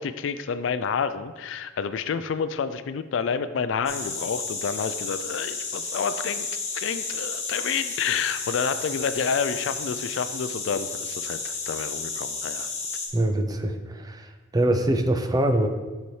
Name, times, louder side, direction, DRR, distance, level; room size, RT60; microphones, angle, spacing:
voice 1, 0.0-6.5 6.7-12.7, left 6 dB, 70° left, 12 dB, 0.3 m, -29 dB
sound 1, 3.8-13.1, left 4 dB, 35° left, 1.3 m, -32 dB
voice 2, 13.1-15.7, right 1 dB, 20° right, 6 dB, 0.4 m, -24 dB
6.8 x 5.9 x 3.2 m, 1.3 s
head